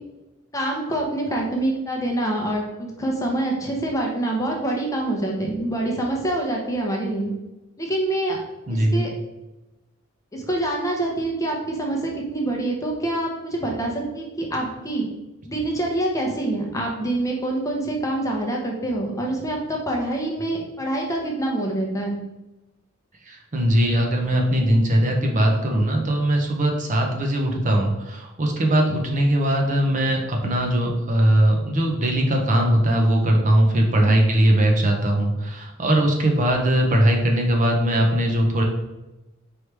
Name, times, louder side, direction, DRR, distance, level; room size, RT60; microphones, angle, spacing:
voice 1, 0.5-7.3 7.8-8.4 8.7-9.1 10.3-15.1 15.5-22.2 33.9-34.2, right 1 dB, 15° left, 0 dB, 0.7 m, -26 dB
voice 2, 8.7-9.1 23.2-38.6, right 1 dB, 40° right, 1 dB, 0.6 m, -20 dB
4.6 x 3.1 x 3.3 m, 1.0 s
head